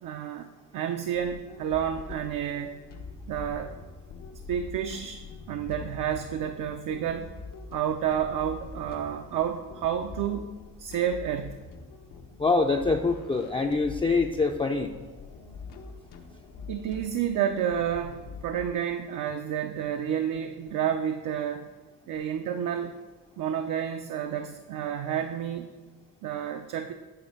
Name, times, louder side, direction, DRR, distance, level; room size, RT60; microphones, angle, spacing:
voice 1, 0.0-0.5 0.7-2.8 3.3-3.8 4.5-5.2 5.5-7.3 7.7-10.5 10.8-11.6 16.7-18.2 18.4-21.7 22.1-22.9 23.4-25.7 26.2-26.9, right 9 dB, 75° right, 6 dB, 0.5 m, -30 dB
sound 1, 1.1-18.7, left 4 dB, 80° left, 0.8 m, -44 dB
voice 2, 12.4-14.9, left 3 dB, 15° left, 2 dB, 0.3 m, -25 dB
7.8 x 3.4 x 5.3 m, 1.3 s
cardioid pair, 90°, 32 cm